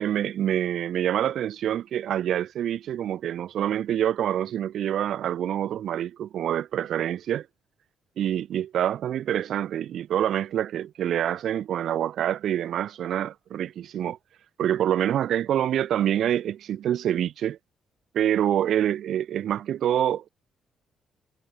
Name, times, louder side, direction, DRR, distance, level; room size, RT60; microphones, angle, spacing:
voice 1, 0.0-7.5 8.2-14.2 14.6-17.6 18.1-20.3, right 10 dB, 70° right, 1.6 m, -26 dB
cardioid pair, 90°, 0 cm